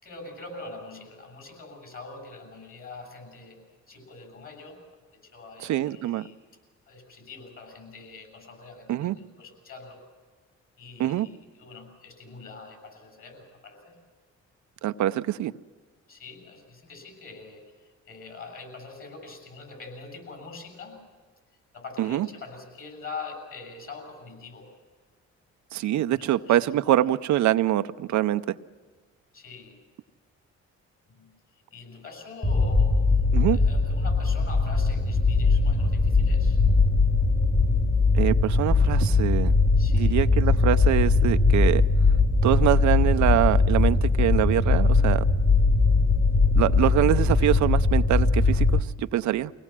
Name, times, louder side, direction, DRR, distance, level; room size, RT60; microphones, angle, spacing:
voice 1, 0.0-4.8 5.1-6.4 6.9-10.0 10.8-14.0 16.1-21.0 21.7-24.7 26.0-27.1 29.3-29.8 31.1-31.3 31.7-33.1 33.5-36.6 39.8-40.2, left 3 dB, 45° left, 5 dB, 7.2 m, -44 dB
voice 2, 5.6-6.3 8.9-9.2 11.0-11.3 14.8-15.5 22.0-22.3 25.7-28.6 33.3-33.6 38.1-39.5 39.9-41.9 42.4-45.2 46.6-49.5, right 13 dB, 70° right, 12 dB, 0.6 m, -24 dB
sound 1, 32.4-48.8, left 3 dB, 25° left, 1.7 m, -21 dB
24.0 x 18.0 x 7.4 m, 1.5 s
cardioid pair, 90°, 30 cm